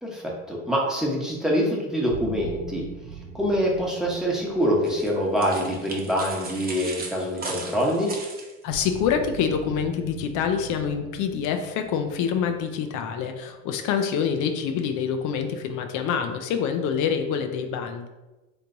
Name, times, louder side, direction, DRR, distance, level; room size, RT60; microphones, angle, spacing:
voice 1, 0.0-2.8 3.3-8.1, equal, ahead, -3 dB, 1.2 m, -25 dB
sound 1, 2.1-7.0 8.7-14.3, right 4 dB, 85° right, 0.9 m, -42 dB
sound 2, 4.8-8.9, right 3 dB, 25° right, 1.0 m, -37 dB
voice 2, 8.6-18.1, left 7 dB, 50° left, 6 dB, 0.6 m, -26 dB
3.3 x 3.0 x 3.9 m, 1.1 s
hypercardioid pair, 80°, 38 cm